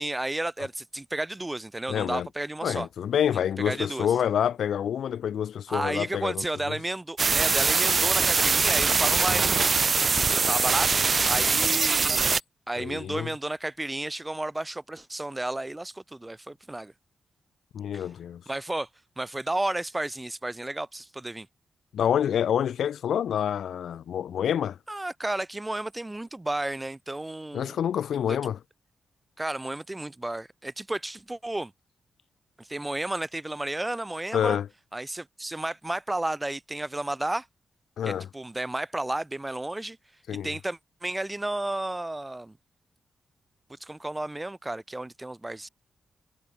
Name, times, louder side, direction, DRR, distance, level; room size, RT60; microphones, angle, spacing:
voice 1, 0.0-2.9 3.6-4.1 5.7-9.6 10.2-10.9 11.2-12.4 12.7-16.9 17.9-18.0 18.5-18.9 19.2-21.5 24.9-27.8 28.3-28.4 29.4-31.7 32.6-34.6 34.9-37.5 38.0-40.0 40.4-42.6 43.8-45.7, right 1 dB, 10° right, 7.3 m, -32 dB
voice 2, 1.9-2.3 2.6-6.8 12.8-13.3 17.7-18.4 21.9-24.8 27.5-28.6 34.3-34.7 38.0-38.3 40.3-40.5, left 9 dB, 80° left, 3.4 m, -27 dB
sound 1, 7.2-12.4, right 4 dB, 35° right, 0.3 m, -23 dB
wide cardioid pair, 155°, 0 cm